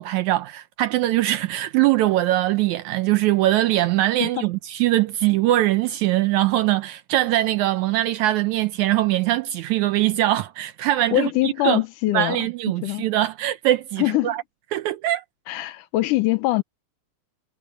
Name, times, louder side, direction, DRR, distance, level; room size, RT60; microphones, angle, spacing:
voice 1, 0.0-11.8 12.1-14.4 14.7-15.2, right 15 dB, 80° right, 2.0 m, -22 dB
voice 2, 11.1-12.5 12.8-13.1 14.0-14.4 15.5-16.6, left 17 dB, 85° left, 2.4 m, -23 dB
omnidirectional pair, 3.6 m